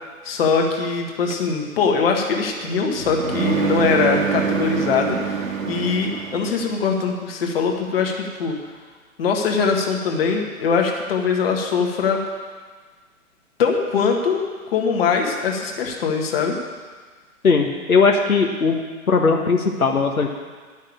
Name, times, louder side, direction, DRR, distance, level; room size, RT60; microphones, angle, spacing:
voice 1, 0.2-8.6 9.2-12.2 13.6-14.4 14.7-16.6, left 5 dB, 40° left, 1 dB, 1.8 m, -22 dB
sound 1, 1.3-6.9, right 6 dB, 65° right, 1.4 m, -26 dB
voice 2, 17.4-18.8 19.1-20.3, left 4 dB, 80° left, 2 dB, 1.3 m, -18 dB
10.5 x 6.4 x 8.7 m, 1.5 s
figure-of-eight pair, 125°, 43 cm